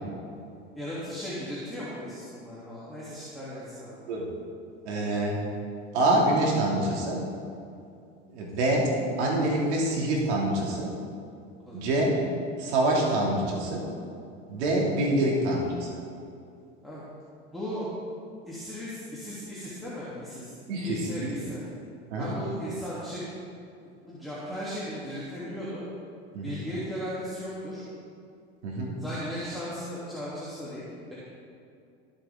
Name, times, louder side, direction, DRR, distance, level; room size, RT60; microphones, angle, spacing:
voice 1, 0.7-4.0 11.7-11.9 16.8-17.0 17.5-17.9 18.4-21.6 22.2-23.2 23.8-25.8 26.4-27.8 29.0-31.1, equal, ahead, -10 dB, 3.1 m, -37 dB
voice 2, 4.8-5.4 5.9-7.2 8.3-8.9 9.2-10.9 11.7-12.1 12.6-13.8 14.5-15.9 20.7-21.3 22.1-22.3 26.3-26.6 28.6-28.9, right 1 dB, 80° right, -2 dB, 3.0 m, -26 dB
18.5 x 7.6 x 3.8 m, 2.5 s
hypercardioid pair, 95°, 33 cm